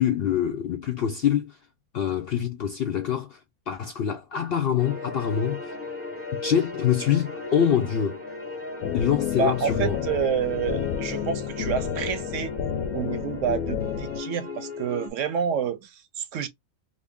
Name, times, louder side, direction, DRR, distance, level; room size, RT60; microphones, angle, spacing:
voice 1, 0.0-1.6 1.9-5.8 6.4-8.2 8.9-10.0, left 9 dB, 65° left, 0.6 m, -25 dB
sound 1, 4.8-15.1, left 3 dB, 10° right, 0.8 m, -37 dB
sound 2, 8.8-14.2, left 8 dB, 85° left, 1.0 m, -30 dB
voice 2, 9.4-12.5 12.9-16.5, right 7 dB, 70° right, 0.9 m, -28 dB
2.8 x 2.6 x 3.5 m
omnidirectional pair, 1.5 m